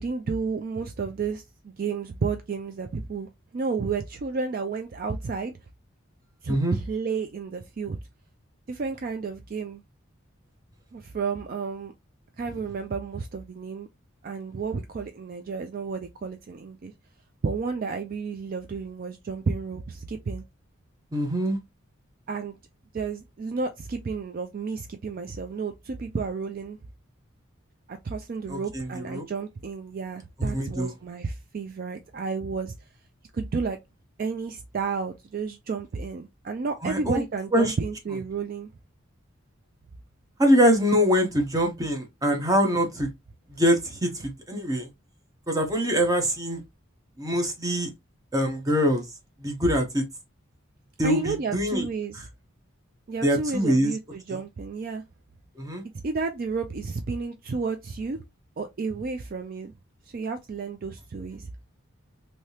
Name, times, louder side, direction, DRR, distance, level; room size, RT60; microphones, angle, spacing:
voice 1, 0.0-5.5 6.4-8.0 8.7-9.8 10.9-11.9 12.4-13.9 14.2-16.9 17.4-20.4 22.3-22.6 22.9-26.8 27.9-32.7 33.3-33.8 34.2-38.7 51.0-52.3 53.1-55.0 56.0-58.2 58.6-59.7 60.1-61.5, right 4 dB, 45° right, 0.4 m, -31 dB
voice 2, 21.1-21.6 28.5-29.3 30.4-30.9 36.8-37.2 37.5-37.7 40.4-43.1 43.5-44.9 45.5-46.6 47.2-47.9 48.3-49.0 49.4-50.0 51.0-51.8 53.2-53.9 54.3-54.4 55.6-55.8, equal, 15° right, 0.8 m, -24 dB
3.3 x 2.7 x 2.8 m
head